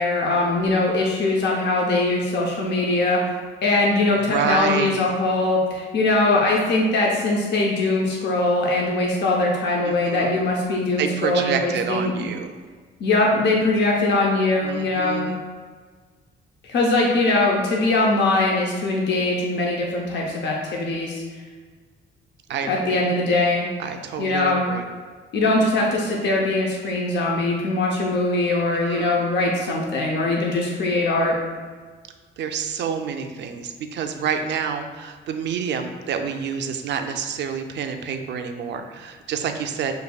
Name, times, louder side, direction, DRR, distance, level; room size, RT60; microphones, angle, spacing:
voice 1, 0.0-3.2 3.6-12.3 13.0-15.3 16.6-21.2 22.7-23.7 24.2-24.7 25.3-31.3, left 2 dB, 60° left, -1 dB, 0.7 m, -21 dB
voice 2, 4.2-5.0 9.8-10.4 11.0-12.5 14.6-15.4 22.5-23.0 23.8-24.8 28.7-29.2 32.4-39.9, right 7 dB, 60° right, 6 dB, 0.5 m, -28 dB
6.5 x 2.6 x 2.3 m, 1.5 s
cardioid pair, 90°, 20 cm